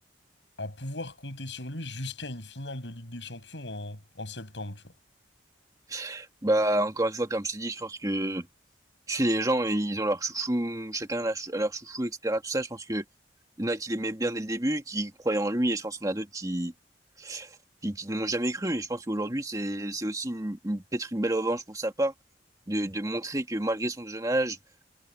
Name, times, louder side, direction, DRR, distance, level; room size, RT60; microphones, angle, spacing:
voice 1, 0.6-4.9, left 2 dB, 85° left, 6.5 m, -38 dB
voice 2, 5.9-8.5 9.1-13.0 13.6-16.7 17.2-17.5 17.8-22.1 22.7-24.6, right 1 dB, 20° right, 2.0 m, -29 dB
head